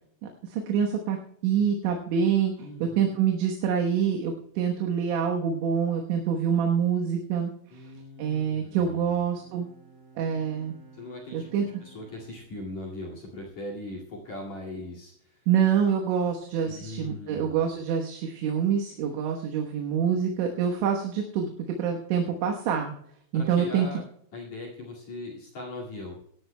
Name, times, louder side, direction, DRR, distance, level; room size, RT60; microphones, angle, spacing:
voice 1, 0.4-1.2 1.4-7.9 8.2-9.7 10.2-10.7 11.3-11.6 15.5-21.5 21.8-22.9 23.3-23.9, right 7 dB, 75° right, 1 dB, 3.4 m, -26 dB
voice 2, 2.6-3.2 7.7-9.2 10.9-15.5 16.6-17.7 23.3-24.0 24.3-26.1, left 1 dB, 45° left, -1 dB, 2.7 m, -40 dB
Bowed string instrument, 8.5-14.0, right 4 dB, 20° right, 4.5 m, -56 dB
24.0 x 13.0 x 2.2 m, 0.70 s
omnidirectional pair, 5.7 m